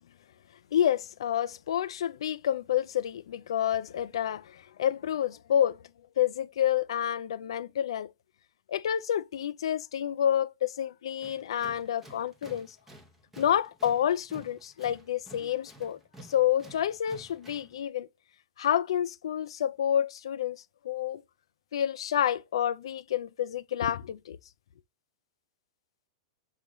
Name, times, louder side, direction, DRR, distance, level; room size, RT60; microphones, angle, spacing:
voice 1, 0.7-5.8 6.2-8.1 8.7-12.8 13.4-18.1 18.6-21.2 21.7-24.4, left 10 dB, 85° left, 0.3 m, -29 dB
Tools, 11.2-17.8, right 2 dB, 10° right, 0.7 m, -52 dB
6.5 x 2.3 x 3.0 m
supercardioid pair, 155°, 3 cm